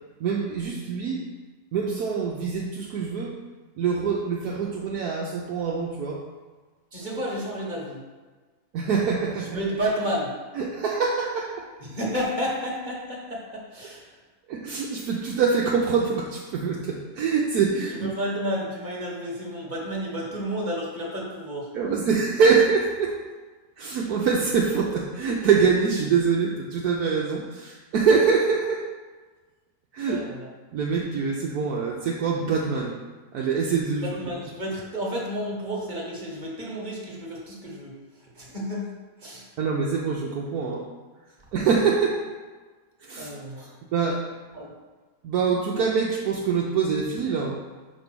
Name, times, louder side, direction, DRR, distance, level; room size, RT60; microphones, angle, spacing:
voice 1, 0.2-1.2 1.7-3.3 3.8-6.2 8.7-9.6 10.6-11.6 14.5-18.1 21.7-23.1 23.8-28.8 29.9-30.2 30.7-33.0 33.3-34.1 39.6-40.8 41.5-42.2 43.0-43.3 43.9-44.2 45.2-47.6, right 5 dB, 75° right, -3 dB, 1.2 m, -24 dB
voice 2, 6.9-8.0 9.4-10.3 11.8-14.2 18.0-21.7 30.1-30.5 34.0-38.9 39.2-39.5 43.2-43.8 44.5-44.7, equal, 30° right, -3 dB, 1.4 m, -31 dB
5.4 x 4.4 x 6.1 m, 1.4 s
omnidirectional pair, 1.6 m